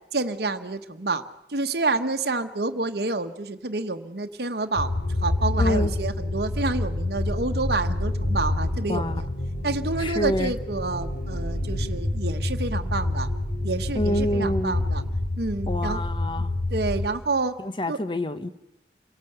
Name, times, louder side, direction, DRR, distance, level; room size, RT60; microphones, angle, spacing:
voice 1, 0.1-1.2 1.5-4.9 5.2-9.3 9.6-13.3 13.6-15.0 15.4-16.0 16.7-17.6 17.9-18.0, right 3 dB, 70° right, 7 dB, 1.1 m, -28 dB
sound 1, 4.8-17.1, left 1 dB, 70° left, 2.8 m, -27 dB
voice 2, 5.6-5.9 8.9-9.2 10.0-10.5 13.9-14.8 15.7-16.5 17.6-18.5, left 1 dB, 30° left, 12 dB, 0.9 m, -27 dB
28.0 x 17.5 x 8.0 m, 0.93 s
head